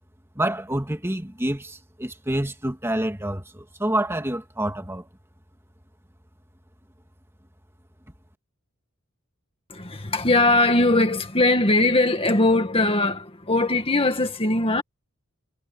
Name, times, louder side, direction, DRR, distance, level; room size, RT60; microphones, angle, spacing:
voice 1, 0.4-5.1, right 1 dB, 10° right, 2.1 m, -27 dB
voice 2, 9.7-14.8, left 2 dB, 25° left, 2.0 m, -20 dB
head